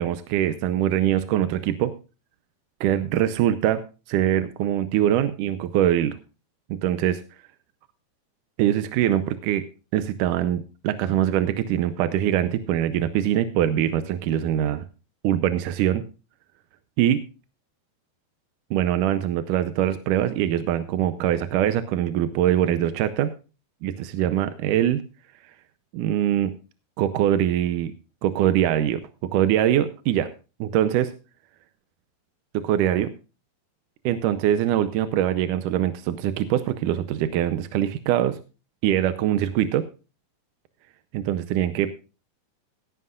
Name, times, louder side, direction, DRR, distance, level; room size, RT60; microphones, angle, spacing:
voice 1, 0.0-1.9 2.8-6.2 6.7-7.2 8.6-9.7 9.9-14.8 15.2-16.0 17.0-17.2 18.7-23.3 23.8-25.0 25.9-26.5 27.0-27.9 28.2-29.0 29.3-30.3 30.6-31.1 32.5-33.1 34.1-38.4 38.8-39.9 41.1-41.9, right 11 dB, 75° right, 11 dB, 2.1 m, -23 dB
17.0 x 11.0 x 2.4 m, 0.32 s
omnidirectional pair, 4.1 m